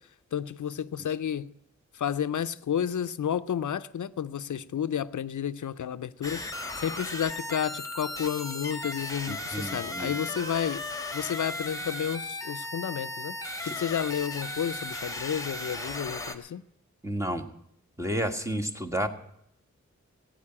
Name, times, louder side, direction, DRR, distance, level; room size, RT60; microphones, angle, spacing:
voice 1, 0.3-1.5 1.9-6.4 6.8-10.8 11.1-13.4 13.6-16.6, left 9 dB, 90° left, 0.5 m, -31 dB
sound 1, 6.2-16.4, left 1 dB, 10° left, 1.5 m, -36 dB
voice 2, 9.3-10.1 13.6-13.7 17.0-17.4 18.0-19.1, right 1 dB, 10° right, 1.5 m, -31 dB
15.0 x 9.0 x 8.6 m
wide cardioid pair, 70°, 29 cm